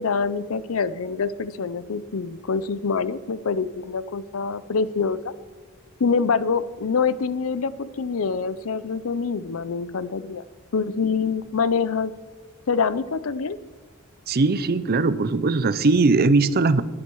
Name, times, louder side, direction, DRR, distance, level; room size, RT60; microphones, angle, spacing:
voice 1, 0.0-5.3 6.0-10.4 10.7-12.1 12.7-13.6, left 5 dB, 70° left, 16 dB, 0.5 m, -25 dB
voice 2, 14.3-16.8, right 3 dB, 45° right, 15 dB, 0.6 m, -20 dB
21.0 x 8.6 x 4.7 m, 1.4 s
head